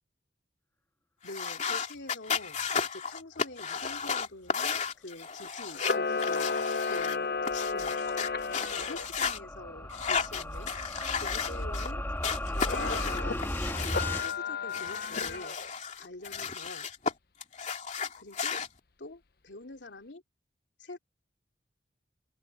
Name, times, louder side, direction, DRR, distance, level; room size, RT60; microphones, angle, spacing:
voice 1, 1.2-2.6 2.9-6.6 6.8-8.0 8.7-10.7 11.2-12.0 12.5-15.6 16.0-16.9 18.2-18.6 19.0-20.2 20.8-21.0, left 2 dB, 85° left, 2.8 m, -45 dB
sound 1, 1.2-9.4 9.9-11.9 12.2-14.3 14.7-17.1 17.4-18.7, left 6 dB, 45° left, 2.9 m, -34 dB
Camera, 5.7-9.0 12.6-13.4 13.9-15.7, left 4 dB, 60° left, 1.0 m, -33 dB
sound 2, 7.0-14.3, left 1 dB, 15° left, 1.9 m, -36 dB
open air
head